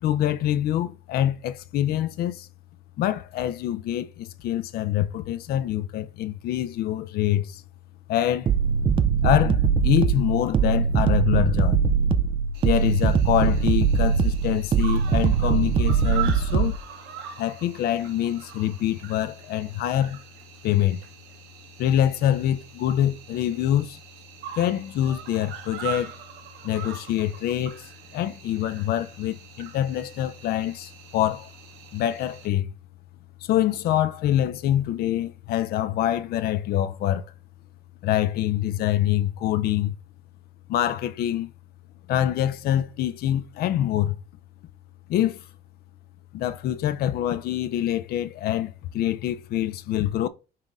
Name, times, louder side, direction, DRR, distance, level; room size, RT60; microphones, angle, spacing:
voice 1, 0.0-2.5 3.0-7.6 8.1-8.5 9.2-11.8 12.6-16.7 17.4-20.2 20.6-21.0 21.8-24.0 24.6-26.1 26.6-31.5 31.9-32.7 33.4-37.3 38.0-39.9 40.7-41.5 42.1-44.2 45.1-45.4 46.3-50.3, left 12 dB, 65° left, 0.4 m, -25 dB
sound 1, 8.5-16.8, right 6 dB, 30° right, 0.4 m, -22 dB
Cricket, 12.5-32.5, right 10 dB, 85° right, 0.8 m, -42 dB
5.7 x 2.5 x 3.5 m
cardioid pair, 110°, 17 cm